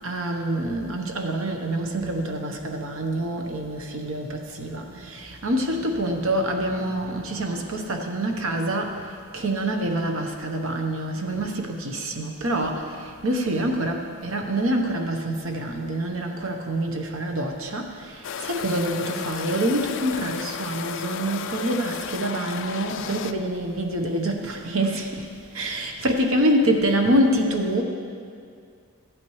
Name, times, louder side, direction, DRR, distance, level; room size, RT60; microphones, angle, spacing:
voice 1, 0.0-25.3 25.5-27.8, right 1 dB, 65° right, 3 dB, 1.0 m, -26 dB
sound 1, 18.2-23.3, left 7 dB, 60° left, 0.4 m, -33 dB
14.5 x 8.7 x 3.2 m, 2.3 s
head